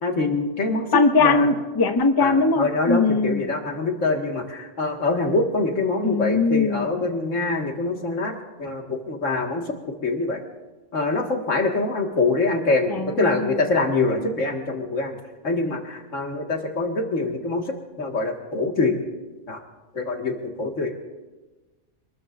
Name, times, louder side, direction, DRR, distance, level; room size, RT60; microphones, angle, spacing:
voice 1, 0.0-1.5 2.2-8.3 8.6-9.7 10.0-10.4 10.9-15.2 15.4-19.0 19.5-19.6 19.9-20.9, left 3 dB, 75° left, 2 dB, 2.3 m, -24 dB
voice 2, 0.9-3.5 6.0-6.9 12.9-13.5, left 4 dB, 25° left, 7 dB, 0.6 m, -20 dB
26.5 x 20.5 x 2.6 m, 1.2 s
omnidirectional pair, 1.3 m